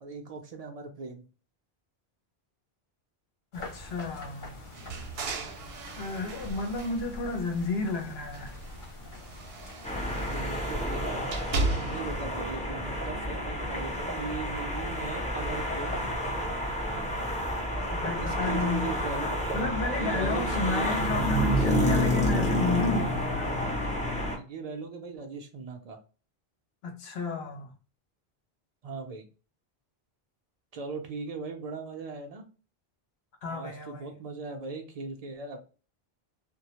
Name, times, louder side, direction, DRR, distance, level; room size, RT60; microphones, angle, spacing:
voice 1, 0.0-1.2 10.0-16.0 17.7-21.0 24.3-26.0 28.8-29.3 30.7-32.4 33.5-35.6, right 4 dB, 50° right, 0.5 m, -39 dB
voice 2, 3.5-4.6 5.9-8.6 17.9-19.0 19.5-23.7 26.8-27.7 33.4-34.1, left 3 dB, 85° left, 0.9 m, -32 dB
sound 1, 3.5-11.5, left 2 dB, 55° left, 0.9 m, -46 dB
sound 2, 4.7-7.9 8.3-12.2, right 2 dB, 75° right, 0.8 m, -36 dB
sound 3, 9.8-24.4, equal, 10° left, 0.4 m, -29 dB
2.2 x 2.0 x 2.8 m
omnidirectional pair, 1.0 m